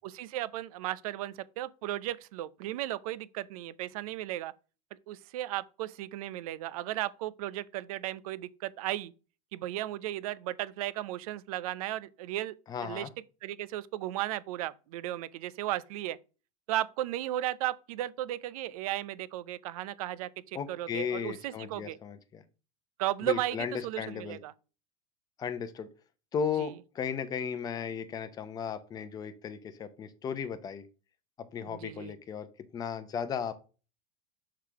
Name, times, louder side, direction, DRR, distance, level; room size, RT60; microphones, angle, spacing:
voice 1, 0.0-4.5 4.9-9.1 9.5-12.5 12.8-13.1 13.4-16.2 16.7-22.0 23.0-24.5 26.6-26.7 31.7-32.1, right 14 dB, 75° right, 0.6 m, -35 dB
voice 2, 12.7-13.1 20.5-22.4 23.2-24.4 25.4-25.9 26.3-30.9 31.4-32.5 32.7-33.5, left 7 dB, 20° left, 0.7 m, -35 dB
6.6 x 3.8 x 4.5 m
supercardioid pair, 150°, 19 cm